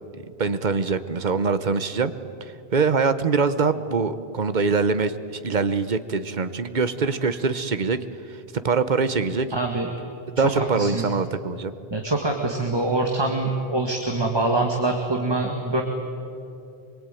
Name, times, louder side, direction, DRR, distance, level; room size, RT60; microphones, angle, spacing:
voice 1, 0.1-2.1 2.7-8.0 8.3-8.4 8.6-9.5 10.4-11.7, right 4 dB, 50° right, 11 dB, 1.1 m, -23 dB
voice 2, 9.5-9.9 10.5-11.1 11.9-15.8, right 2 dB, 25° right, 2 dB, 1.9 m, -24 dB
24.5 x 22.5 x 9.1 m, 2.7 s
omnidirectional pair, 1.0 m